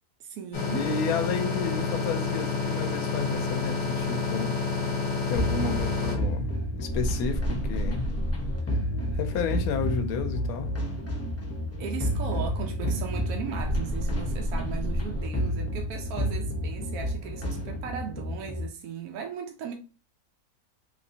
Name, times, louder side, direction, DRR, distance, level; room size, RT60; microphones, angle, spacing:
voice 1, 0.2-0.8 11.8-19.7, right 7 dB, 75° right, 1.0 m, -37 dB
sound 1, 0.5-6.2, left 4 dB, 40° left, 0.9 m, -29 dB
voice 2, 0.7-4.5 5.3-8.1 9.1-10.7, left 5 dB, 75° left, 1.0 m, -31 dB
sound 2, 5.3-18.6, equal, 20° left, 0.4 m, -30 dB
3.3 x 2.8 x 2.6 m
omnidirectional pair, 1.6 m